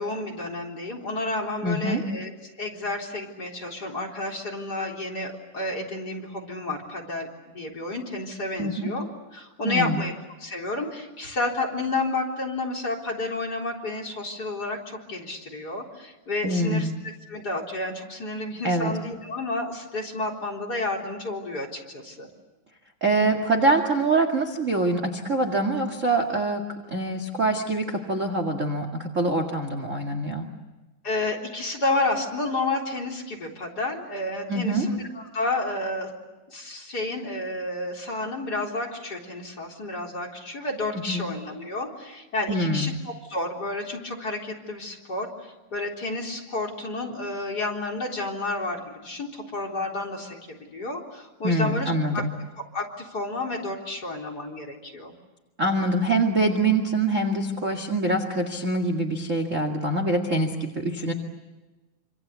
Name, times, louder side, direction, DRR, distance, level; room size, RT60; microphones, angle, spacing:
voice 1, 0.0-2.3 2.6-9.1 9.3-10.1 10.4-16.9 17.3-22.3 31.0-36.1 36.5-52.2 52.6-55.1, left 2 dB, 30° left, 3 dB, 4.2 m, -31 dB
voice 2, 1.6-2.0 8.6-8.9 9.6-10.0 16.4-16.9 18.6-18.9 23.0-26.6 26.9-30.5 34.5-34.9 40.9-41.2 42.5-42.9 51.4-52.3 55.6-61.1, right 2 dB, 30° right, 5 dB, 1.8 m, -24 dB
27.0 x 27.0 x 8.3 m, 1.2 s
omnidirectional pair, 3.9 m